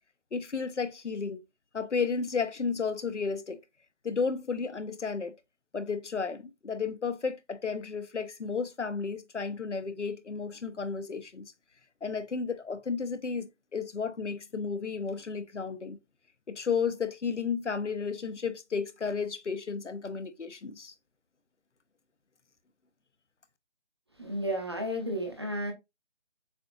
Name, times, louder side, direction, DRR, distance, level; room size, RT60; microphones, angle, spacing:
voice 1, 0.3-1.4 1.7-3.6 4.0-5.4 5.7-11.5 12.0-16.0 16.5-20.9, left 5 dB, 80° left, 0.9 m, -33 dB
voice 2, 24.2-25.7, equal, 20° right, 0.7 m, -32 dB
6.8 x 2.9 x 2.3 m
figure-of-eight pair, 160°, 35 cm